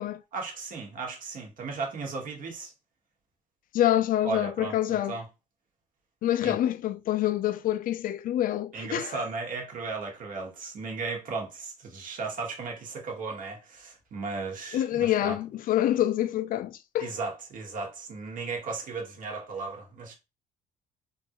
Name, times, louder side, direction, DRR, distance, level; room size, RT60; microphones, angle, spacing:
voice 1, 0.3-2.7 4.2-5.2 6.4-6.6 8.7-15.4 17.0-20.1, right 4 dB, 55° right, 1.4 m, -35 dB
voice 2, 3.7-5.2 6.2-9.1 14.7-17.1, left 12 dB, 55° left, 0.4 m, -26 dB
3.6 x 2.6 x 2.9 m
cardioid pair, 110°, 17 cm